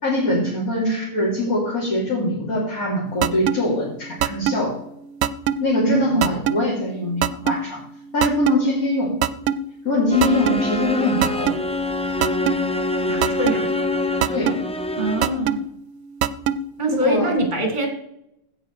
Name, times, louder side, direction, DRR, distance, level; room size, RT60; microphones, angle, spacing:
voice 1, 0.0-4.8 5.6-7.8 8.1-9.2 9.9-11.5 14.3-14.5 17.0-17.3, left 1 dB, 80° left, -7 dB, 3.7 m, -22 dB
sound 1, 3.2-3.6 4.2-4.6 5.2-5.6 6.2-6.6 7.2-7.6 8.2-8.6 9.2-9.6 10.2-10.6 11.2-11.6 12.2-12.6 13.2-13.6 14.2-14.6 15.2-15.6 16.2-16.6, right 11 dB, 80° right, 1.0 m, -20 dB
voice 2, 5.9-6.4 13.1-13.7 15.0-15.6 16.8-17.9, right 1 dB, 30° right, 3 dB, 2.4 m, -23 dB
sound 2, 10.1-15.5, left 2 dB, 10° left, 0.4 m, -25 dB
16.0 x 5.8 x 4.8 m, 0.77 s
omnidirectional pair, 1.5 m